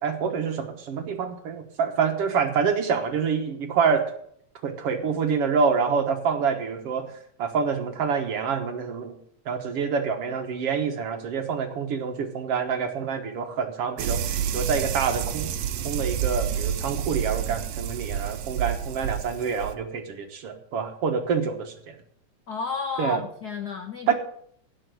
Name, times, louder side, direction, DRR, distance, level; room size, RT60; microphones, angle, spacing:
voice 1, 0.0-4.1 4.6-7.1 7.4-9.2 9.5-15.5 15.8-21.7 23.0-23.2 24.1-24.2, right 6 dB, 60° right, 5 dB, 2.0 m, -26 dB
sound 1, 14.0-19.7, right 9 dB, 75° right, 2.1 m, -29 dB
voice 2, 22.5-24.1, left 5 dB, 85° left, 4 dB, 0.8 m, -32 dB
16.5 x 5.8 x 7.7 m, 0.67 s
omnidirectional pair, 3.4 m